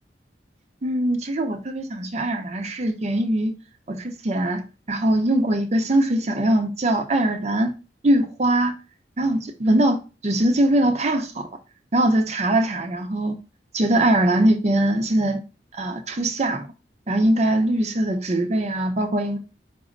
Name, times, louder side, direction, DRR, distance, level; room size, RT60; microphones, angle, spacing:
voice 1, 0.8-3.5 3.9-7.7 8.0-8.7 9.2-11.5 11.9-13.4 13.7-15.4 15.7-16.7 17.1-19.4, right 1 dB, 40° right, 0.6 m, -22 dB
5.0 x 2.0 x 3.7 m
head